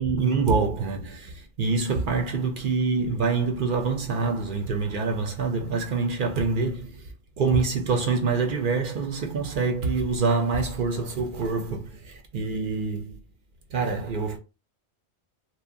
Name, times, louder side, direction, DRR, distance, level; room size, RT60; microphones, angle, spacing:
voice 1, 0.0-7.0 7.4-13.2 13.7-14.4, right 4 dB, 60° right, 0.6 m, -26 dB
2.8 x 2.1 x 2.4 m
omnidirectional pair, 1.1 m